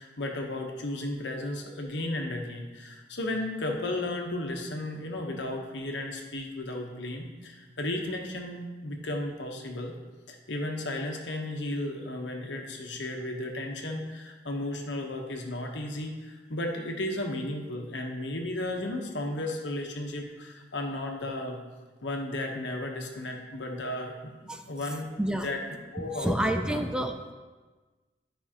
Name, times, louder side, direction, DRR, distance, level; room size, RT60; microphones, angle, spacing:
voice 1, 0.0-9.9 10.3-21.6 22.0-25.1 25.4-25.6 25.9-26.8, left 1 dB, 70° left, 2 dB, 1.1 m, -34 dB
voice 2, 25.2-25.5 26.0-27.3, right 1 dB, 5° right, 5 dB, 0.3 m, -29 dB
11.5 x 5.4 x 2.9 m, 1.3 s
head